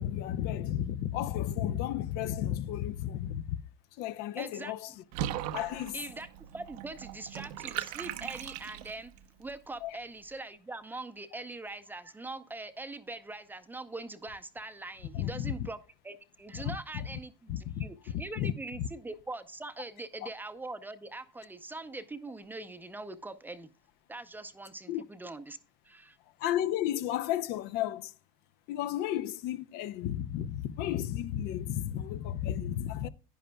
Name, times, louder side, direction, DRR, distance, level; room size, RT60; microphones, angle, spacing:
voice 1, 0.0-3.6 4.0-4.9 5.5-6.0 9.8-10.0 15.1-15.5 16.7-17.1 17.5-17.9 18.4-18.5 18.8-18.9 20.2-20.3 24.9-25.0 26.4-28.1 28.7-33.1, left 11 dB, 55° left, 0.6 m, -33 dB
voice 2, 4.3-4.7 5.9-9.1 9.4-15.8 16.0-23.7 24.1-25.6 25.8-26.2, right 2 dB, 10° right, 0.6 m, -42 dB
Water / Bathtub (filling or washing), 5.1-9.2, right 11 dB, 75° right, 0.8 m, -38 dB
10.5 x 9.9 x 2.2 m
supercardioid pair, 125°, 20 cm